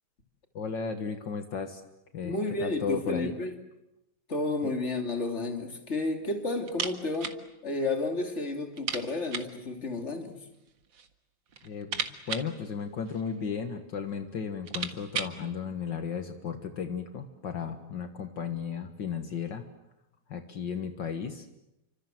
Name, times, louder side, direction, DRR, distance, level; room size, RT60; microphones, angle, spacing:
voice 1, 0.5-1.8 2.1-3.3 4.6-4.7 11.6-19.6 20.3-21.5, left 6 dB, 70° left, 7 dB, 2.2 m, -35 dB
voice 2, 2.2-3.5 4.3-7.3 7.6-10.3, left 2 dB, 35° left, 4 dB, 3.2 m, -31 dB
sound 1, 6.7-7.4 7.7-7.8 8.1-8.2 8.7-9.6 10.5-11.1 11.5-13.4 14.1-14.2 14.5-15.4, right 6 dB, 75° right, 2.4 m, -36 dB
30.0 x 25.5 x 7.7 m, 0.90 s
omnidirectional pair, 2.0 m